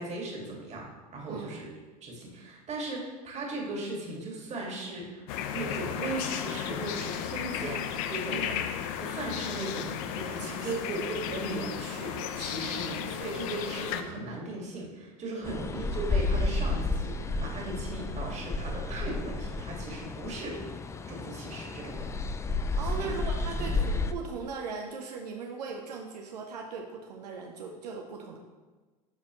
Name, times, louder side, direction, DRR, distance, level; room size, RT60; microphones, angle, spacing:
voice 1, 0.0-1.7 2.0-5.2 5.5-7.8 8.1-8.6 9.0-20.6 21.1-22.1 22.9-23.1 23.5-24.1, right 2 dB, 35° right, -1 dB, 2.1 m, -37 dB
voice 2, 1.3-1.6 8.3-8.6 10.4-10.9 12.8-12.9 15.4-15.6 22.8-28.4, right 5 dB, 80° right, 1 dB, 0.7 m, -39 dB
sound 1, 5.3-14.0, left 9 dB, 60° left, 0.6 m, -34 dB
sound 2, 15.4-24.1, left 3 dB, 15° left, 0.4 m, -31 dB
12.0 x 4.2 x 3.1 m, 1.3 s
hypercardioid pair, 90°, 20 cm